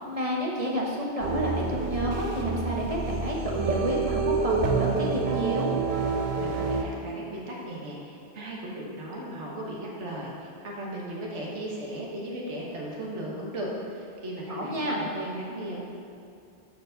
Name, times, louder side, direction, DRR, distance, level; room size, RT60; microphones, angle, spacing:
voice 1, 0.1-5.7 14.5-15.0, right 1 dB, 30° right, -3 dB, 1.3 m, -30 dB
sound 1, 1.2-6.8, right 4 dB, 50° right, 0.7 m, -28 dB
voice 2, 6.4-15.8, right 1 dB, 75° right, -3 dB, 1.5 m, -36 dB
13.0 x 4.6 x 3.9 m, 2.4 s
omnidirectional pair, 1.2 m